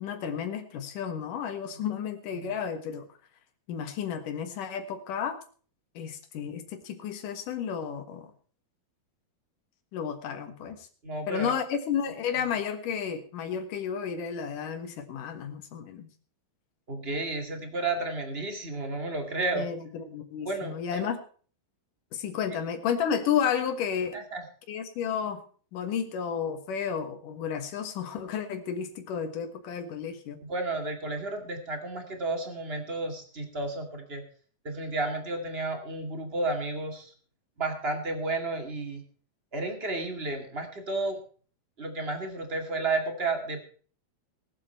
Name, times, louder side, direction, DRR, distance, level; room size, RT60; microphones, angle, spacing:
voice 1, 0.0-3.1 3.7-5.4 5.9-8.3 9.9-10.8 11.3-16.1 19.5-21.2 22.1-24.2 24.7-25.4 25.7-30.4, left 7 dB, 65° left, 8 dB, 2.9 m, -32 dB
voice 2, 11.0-11.5 16.9-19.7 20.4-21.0 24.1-24.4 30.4-34.2 34.6-37.1 37.6-39.0 39.5-41.2 41.8-43.6, right 2 dB, 25° right, 4 dB, 1.5 m, -32 dB
21.5 x 7.5 x 4.4 m, 0.42 s
omnidirectional pair, 4.3 m